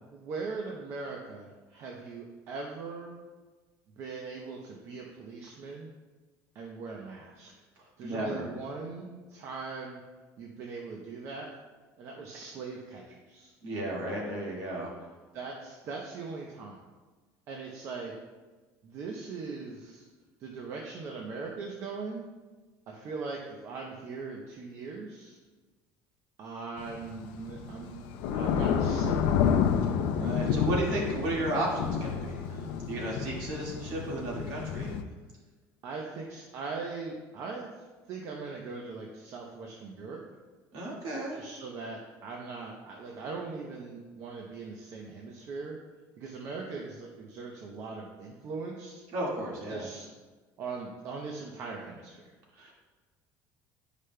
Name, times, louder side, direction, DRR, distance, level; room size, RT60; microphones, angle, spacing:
voice 1, 0.1-3.2 4.0-5.9 6.5-7.5 8.0-10.0 10.4-11.5 12.0-13.5 15.3-16.8 17.5-18.2 18.8-20.1 20.4-22.2 22.9-25.4 26.4-28.0 28.3-29.4 35.8-37.7 38.1-40.3 41.3-45.8 46.2-49.0 49.7-50.1 50.6-52.3, right 4 dB, 45° right, -1 dB, 0.7 m, -40 dB
voice 2, 8.0-8.4 13.6-14.9 30.0-32.6 32.9-34.9 40.7-41.4 49.1-49.9 52.6-52.7, right 1 dB, 75° right, -3 dB, 1.9 m, -33 dB
Thunder / Rain, 26.8-35.0, left 7 dB, 85° left, 0.5 m, -29 dB
11.0 x 4.9 x 2.2 m, 1.3 s
cardioid pair, 170°, 7 cm